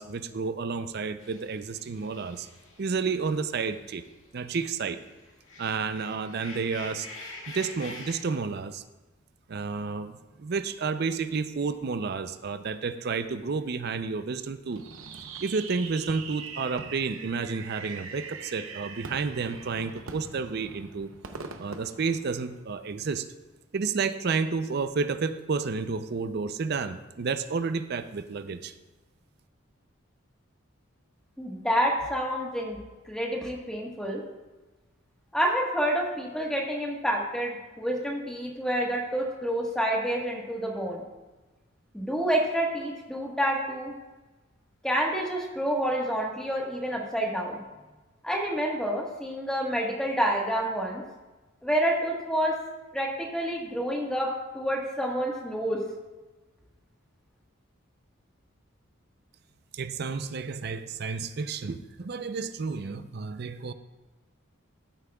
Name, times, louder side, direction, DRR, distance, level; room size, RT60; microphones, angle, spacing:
voice 1, 0.0-2.5 2.8-4.0 4.3-5.0 5.6-7.1 7.5-8.8 9.5-14.8 15.4-21.1 21.6-23.3 23.7-28.7 59.7-63.7, right 4 dB, 50° right, 11 dB, 0.5 m, -31 dB
sound 1, 1.2-4.1 4.5-8.2, left 2 dB, 75° left, 1.8 m, -45 dB
Fireworks, 14.7-22.9, right 5 dB, 85° right, 0.8 m, -42 dB
voice 2, 31.4-32.8 33.1-34.2 35.3-41.0 41.9-43.9 44.8-47.6 48.2-51.0 51.6-52.6 52.9-55.8, equal, 5° left, -1 dB, 1.3 m, -28 dB
14.5 x 8.4 x 2.3 m, 1.2 s
head